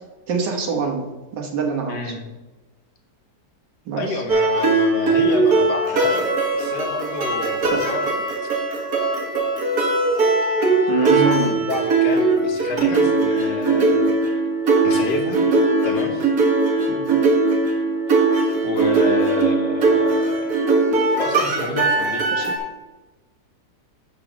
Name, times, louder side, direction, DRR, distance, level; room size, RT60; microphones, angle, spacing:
voice 1, 0.3-2.1 3.9-4.2 7.7-7.9 10.9-11.5 16.9-17.1 22.3-22.5, right 6 dB, 85° right, 1 dB, 1.9 m, -24 dB
voice 2, 1.9-2.3 4.0-8.1 8.4-8.5 11.0-14.1 14.8-15.4 15.8-16.3 18.6-20.6 21.2-22.3, left 2 dB, 75° left, 3 dB, 1.8 m, -29 dB
sound 1, 4.3-22.6, right 3 dB, 65° right, 1.9 m, -20 dB
6.8 x 4.7 x 6.1 m, 1.1 s
omnidirectional pair, 1.8 m